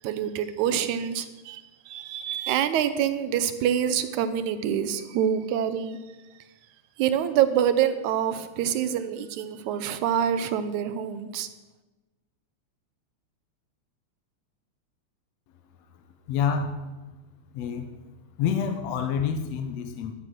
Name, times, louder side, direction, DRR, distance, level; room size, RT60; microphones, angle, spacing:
voice 1, 0.0-6.0 7.0-11.5, right 9 dB, 80° right, 11 dB, 2.2 m, -26 dB
voice 2, 16.3-16.9 17.5-17.9 18.4-20.1, left 7 dB, 75° left, 8 dB, 1.8 m, -28 dB
12.5 x 9.1 x 6.1 m, 1.1 s
omnidirectional pair, 3.4 m